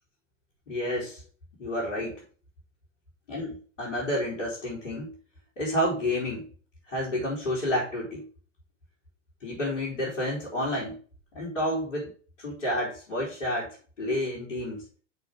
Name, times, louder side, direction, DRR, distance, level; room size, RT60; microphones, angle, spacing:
voice 1, 0.7-1.2 1.6-2.2 3.3-5.1 5.6-6.5 6.9-8.3 9.4-11.0 11.3-12.1 12.4-14.9, left 1 dB, 75° left, -6 dB, 3.7 m, -30 dB
6.2 x 5.3 x 5.0 m, 0.39 s
hypercardioid pair, 95°, 38 cm